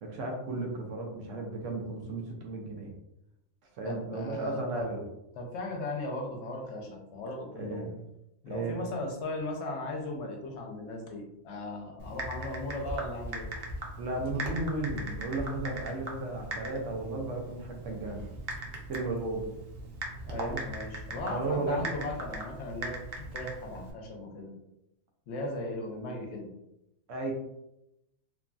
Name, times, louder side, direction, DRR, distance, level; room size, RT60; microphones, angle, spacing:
voice 1, 0.0-2.9 3.8-5.0 7.6-7.9 8.5-8.8 14.0-18.2 18.9-19.5 20.3-20.7 21.3-21.8 27.1-27.3, right 2 dB, 85° right, 1 dB, 1.0 m, -34 dB
voice 2, 3.8-4.9 5.4-7.9 8.4-13.5 20.2-24.5 25.3-26.5, left 2 dB, 70° left, 1 dB, 0.9 m, -37 dB
Typing, 12.0-23.9, right 1 dB, 60° right, 0.7 m, -40 dB
3.0 x 2.5 x 2.2 m, 0.87 s
omnidirectional pair, 1.3 m